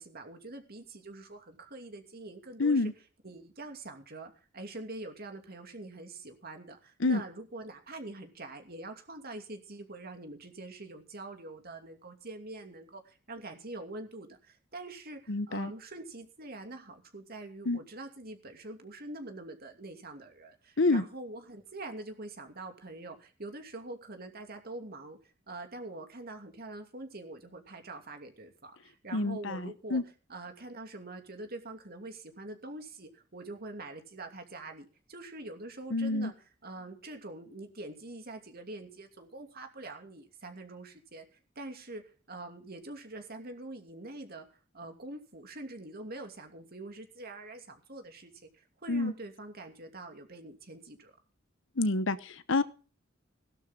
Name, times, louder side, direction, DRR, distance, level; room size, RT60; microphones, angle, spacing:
voice 1, 0.0-2.9 3.2-30.0 30.3-36.3 36.6-42.0 42.3-51.1, right 2 dB, 50° right, 5 dB, 2.7 m, -45 dB
voice 2, 2.6-2.9 7.0-7.2 15.3-15.7 17.7-17.8 20.8-21.0 29.1-30.0 35.9-36.3 48.9-49.1 51.8-52.6, left 3 dB, 65° left, 14 dB, 1.0 m, -28 dB
17.5 x 12.0 x 3.8 m, 0.36 s
head